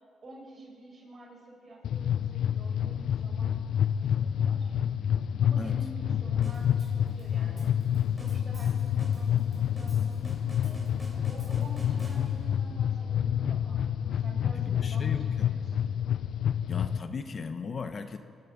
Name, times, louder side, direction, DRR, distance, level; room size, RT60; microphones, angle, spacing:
voice 1, 0.2-3.6 4.0-4.7 5.4-7.7 8.1-10.8 11.3-15.9, right 1 dB, 35° right, -1 dB, 7.0 m, -49 dB
sound 1, 1.8-17.0, left 9 dB, 70° left, 0.7 m, -28 dB
sound 2, 6.4-12.6, equal, ahead, 6.1 m, -50 dB
voice 2, 14.5-15.6 16.7-18.2, left 5 dB, 40° left, 8 dB, 1.1 m, -37 dB
25.5 x 11.0 x 9.7 m, 2.3 s
cardioid pair, 90°, 0 cm